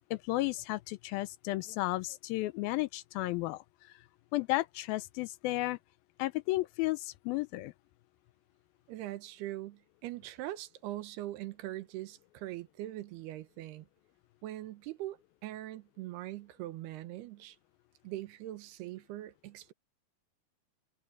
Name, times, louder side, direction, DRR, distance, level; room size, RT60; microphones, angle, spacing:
voice 1, 0.0-3.9 4.3-5.8 6.2-7.7, left 19 dB, 80° left, 2.3 m, -33 dB
voice 2, 8.9-13.9 14.4-17.6 18.0-19.7, right 15 dB, 90° right, 3.1 m, -42 dB
omnidirectional pair, 4.5 m